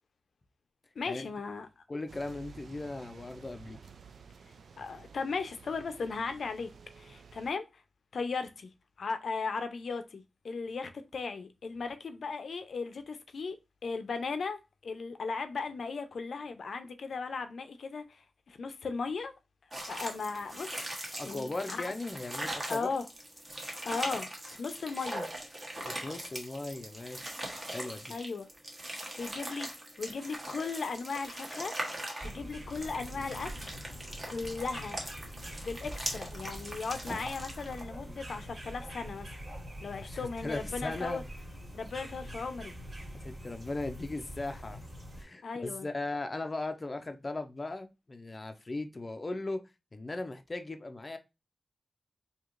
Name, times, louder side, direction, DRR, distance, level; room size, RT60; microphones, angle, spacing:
voice 1, 1.0-1.7 4.8-7.7 8.1-8.7 9.0-13.6 13.8-19.3 19.9-20.8 21.2-21.8 22.7-23.0 23.8-25.3 28.1-28.5 29.2-29.7 30.0-31.7 32.2-33.5 34.3-35.0 35.6-39.3 39.8-41.2 41.7-42.7 45.4-45.9, left 4 dB, 75° left, 0.5 m, -37 dB
voice 2, 1.9-3.8 21.1-22.9 25.8-27.3 27.7-28.2 40.0-41.3 43.1-44.8 45.2-49.6 49.9-51.2, left 2 dB, 30° left, 0.5 m, -38 dB
sound 1, 2.1-7.5, right 5 dB, 85° right, 0.4 m, -53 dB
sound 2, 19.7-37.8, right 1 dB, 25° right, 1.0 m, -41 dB
sound 3, 32.2-45.2, equal, 45° right, 1.5 m, -45 dB
4.5 x 2.8 x 2.4 m
wide cardioid pair, 145°, 0 cm